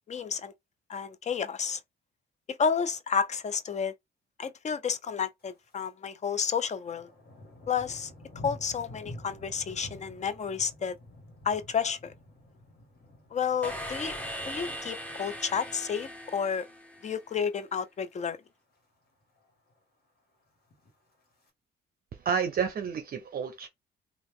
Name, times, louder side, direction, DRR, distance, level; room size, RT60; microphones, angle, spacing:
voice 1, 0.1-0.5 0.9-1.8 2.6-3.9 4.4-7.1 7.7-8.1 8.4-10.9 11.4-12.1 13.3-14.2 14.5-16.7 17.0-18.4, left 6 dB, 35° left, 0.5 m, -31 dB
Thunder, 5.4-5.9 6.2-16.6 17.0-17.3 17.8-18.2 18.5-18.6 18.7-18.8 19.2-19.8 20.6-21.5, left 1 dB, 50° left, 1.6 m, -50 dB
sound 1, 13.6-17.5, equal, 5° left, 1.2 m, -40 dB
voice 2, 22.1-23.7, right 6 dB, 50° right, 0.6 m, -30 dB
3.0 x 2.4 x 3.5 m
cardioid pair, 90°, 20 cm